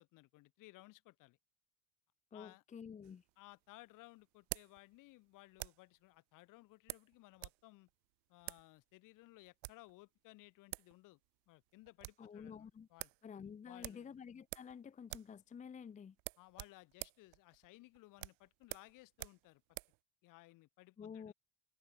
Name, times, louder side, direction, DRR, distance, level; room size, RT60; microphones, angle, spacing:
voice 1, 0.0-1.4 2.3-2.6 3.4-7.9 8.3-11.2 11.5-13.1 13.6-14.2 16.4-19.6 20.2-21.3, left 20 dB, 70° left, 2.7 m, -60 dB
voice 2, 2.3-3.2 12.2-12.9 13.2-16.2 21.0-21.3, left 7 dB, 20° left, 0.7 m, -50 dB
sound 1, 3.0-6.0 6.9-7.6 7.9-8.0 8.4-8.7 9.4-9.9 10.4-10.5 10.7-10.9 11.2-11.3 11.7-12.3 12.6-12.7 13.0-13.2 13.8-14.8 15.0-15.4 15.6-15.8 16.2-20.0, right 34 dB, 80° right, 0.8 m, -48 dB
cardioid pair, 115°, 34 cm